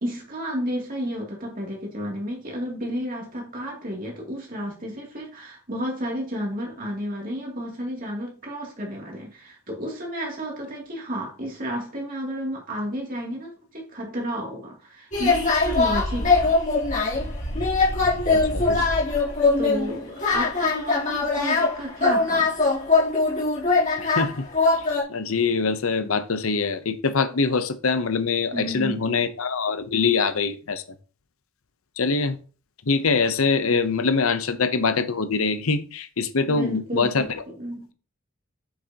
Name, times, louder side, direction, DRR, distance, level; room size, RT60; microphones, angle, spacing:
voice 1, 0.0-16.5 19.6-22.6 28.5-29.2 36.5-37.9, equal, 40° right, 2.7 m, -32 dB
sound 1, 15.1-25.0, left 3 dB, 35° left, 3.3 m, -22 dB
voice 2, 18.3-18.9 24.0-24.4 25.1-30.8 32.0-32.4 32.9-37.2, left 4 dB, 75° left, 0.8 m, -24 dB
8.0 x 6.5 x 2.9 m
head